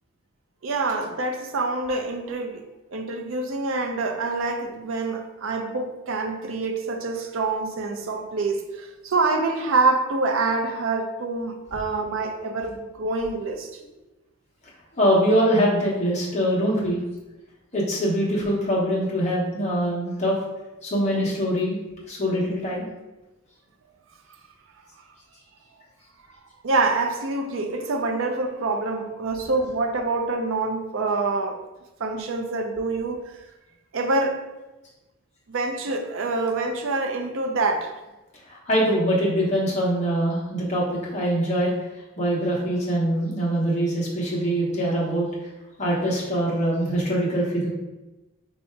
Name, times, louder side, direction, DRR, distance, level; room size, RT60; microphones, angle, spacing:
voice 1, 0.6-2.7 2.9-13.7 26.6-31.6 32.0-33.4 33.9-34.5 35.5-37.9, right 3 dB, 65° right, 4 dB, 0.5 m, -26 dB
voice 2, 14.9-17.0 17.7-20.4 20.8-21.8 22.1-22.9 38.5-45.3 45.8-47.7, equal, 30° left, -5 dB, 1.0 m, -23 dB
3.3 x 2.7 x 4.5 m, 1.1 s
head